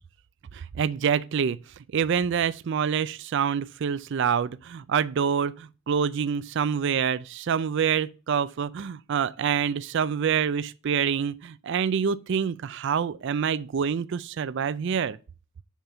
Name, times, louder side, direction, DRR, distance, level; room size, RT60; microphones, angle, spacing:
voice 1, 0.5-1.6 1.9-15.2, right 7 dB, 60° right, 0.4 m, -26 dB
7.3 x 5.3 x 5.7 m
head